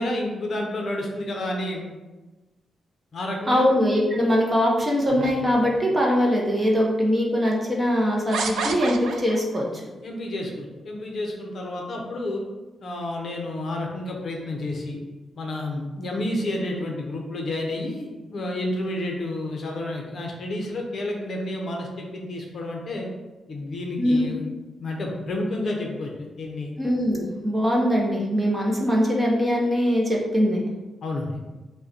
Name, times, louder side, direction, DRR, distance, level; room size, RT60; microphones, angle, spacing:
voice 1, 0.0-1.9 3.1-3.6 10.0-12.4 12.8-15.0 15.4-23.1 23.5-24.5 24.8-26.7 31.0-31.4, left 1 dB, 45° left, 1 dB, 0.7 m, -30 dB
voice 2, 3.5-9.8 24.0-24.4 26.8-30.6, equal, 15° right, -2 dB, 0.7 m, -22 dB
sound 1, 5.1-6.0 6.8-6.9 8.3-9.6, right 4 dB, 75° right, 0.5 m, -31 dB
5.3 x 2.2 x 4.0 m, 1.1 s
wide cardioid pair, 175°, 0 cm